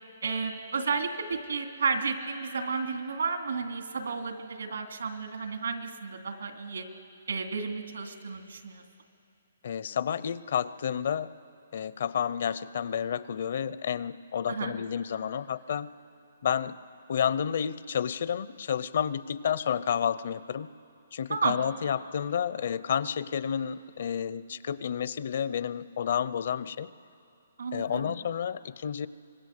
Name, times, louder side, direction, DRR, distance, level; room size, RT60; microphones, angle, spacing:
voice 1, 0.2-6.9 7.3-8.8 14.5-14.7 21.3-21.6 27.6-28.1, right 5 dB, 85° right, 5 dB, 2.6 m, -32 dB
voice 2, 9.6-11.3 11.7-15.9 16.4-16.8 17.1-20.7 21.1-26.9 27.7-29.1, left 8 dB, 50° left, 16 dB, 0.6 m, -30 dB
25.0 x 21.5 x 6.6 m, 2.5 s
hypercardioid pair, 170°, 0 cm